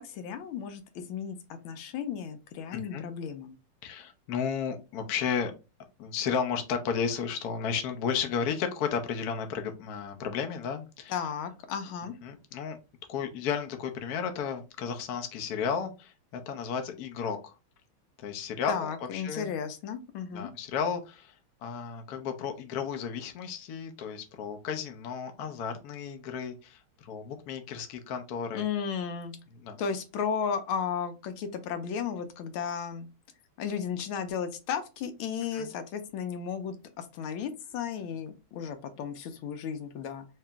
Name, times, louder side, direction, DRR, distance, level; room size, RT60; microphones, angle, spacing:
voice 1, 0.0-1.4 1.6-3.6 11.1-12.1 18.7-20.5 28.5-29.4 29.8-33.1 33.6-40.3, left 7 dB, 80° left, 8 dB, 1.4 m, -34 dB
voice 2, 2.7-3.0 3.8-5.5 6.0-11.1 12.2-12.8 13.1-17.5 18.2-19.5 20.3-21.3 21.6-28.6 29.6-29.8 35.5-35.7, left 6 dB, 65° left, 5 dB, 1.0 m, -33 dB
3.2 x 2.8 x 3.4 m, 0.29 s
omnidirectional pair, 2.3 m